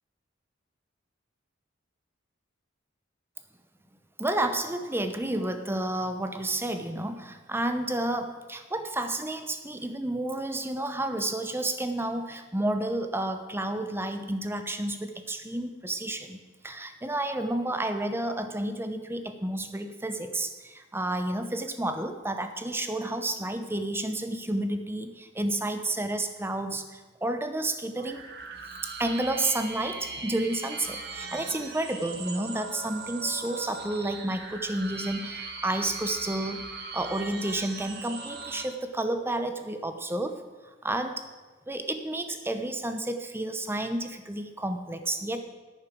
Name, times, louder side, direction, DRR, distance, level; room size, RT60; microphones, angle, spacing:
voice 1, 4.2-28.2 29.0-40.4 40.8-41.2 41.7-45.4, right 1 dB, 10° right, 8 dB, 0.8 m, -31 dB
sound 1, 28.0-38.6, right 4 dB, 55° right, 1.5 m, -40 dB
10.5 x 9.4 x 6.1 m, 1.3 s
head